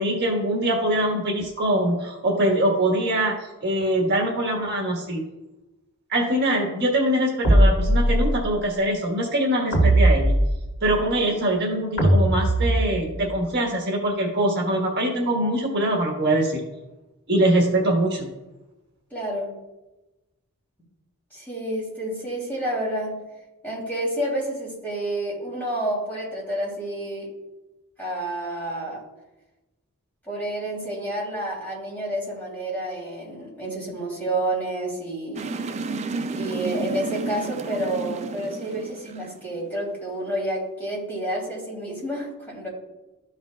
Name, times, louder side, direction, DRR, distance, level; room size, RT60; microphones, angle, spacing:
voice 1, 0.0-5.2 6.1-10.3 10.8-16.6 17.3-18.3, right 1 dB, 50° right, 0 dB, 1.3 m, -23 dB
sound 1, 7.4-8.5 9.7-11.0 12.0-13.2, right 1 dB, 70° left, 2.7 m, -19 dB
voice 2, 11.0-11.3 19.1-19.5 21.3-23.2 23.6-27.3 28.0-29.0 30.3-35.6 36.3-42.7, right 1 dB, 10° left, -5 dB, 2.8 m, -29 dB
sound 2, 35.3-39.8, right 3 dB, 30° right, 0.3 m, -31 dB
13.5 x 5.7 x 2.3 m, 1.0 s
head